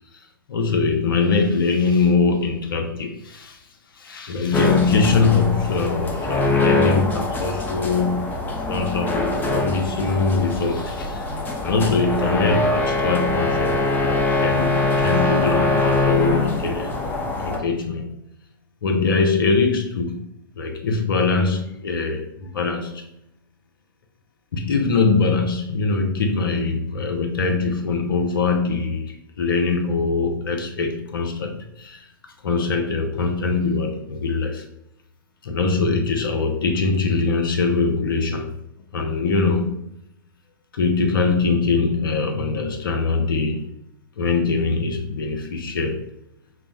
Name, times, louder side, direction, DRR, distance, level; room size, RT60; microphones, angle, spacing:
voice 1, 0.5-3.6 4.0-8.4 8.7-11.3 11.6-17.0 17.4-18.2 18.8-20.2 20.6-23.1 24.5-32.1 32.4-34.6 35.4-38.5 38.9-39.8 40.7-43.7 44.2-46.0, left 4 dB, 75° left, 4 dB, 0.7 m, -22 dB
sound 1, 4.5-17.6, left 2 dB, 15° left, 0.5 m, -23 dB
5.7 x 2.0 x 2.3 m, 0.82 s
hypercardioid pair, 105°, 12 cm